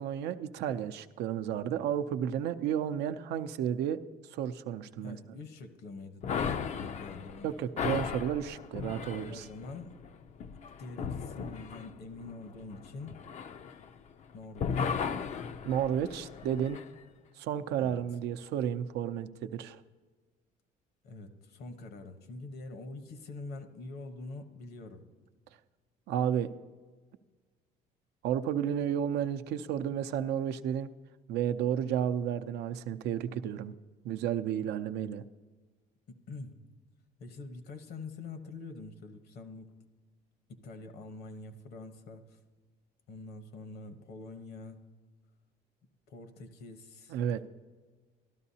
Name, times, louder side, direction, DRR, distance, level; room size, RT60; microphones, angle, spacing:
voice 1, 0.0-4.0 4.3-5.2 7.4-9.4 15.7-16.8 17.4-19.8 26.1-26.5 28.2-30.9 31.3-33.7 34.0-35.2 47.1-47.5, right 9 dB, 80° right, 10 dB, 0.5 m, -32 dB
voice 2, 5.0-7.5 9.3-10.0 10.8-13.2 14.3-15.3 17.8-18.0 21.0-25.0 36.1-36.7 37.2-39.7 40.5-42.4 43.1-44.8 46.1-47.2, left 3 dB, 70° left, 8 dB, 1.1 m, -45 dB
sound 1, 6.2-14.2 14.6-16.9, left 6 dB, 45° left, 0.4 m, -36 dB
13.0 x 12.5 x 2.8 m, 1.4 s
cardioid pair, 110°, 17 cm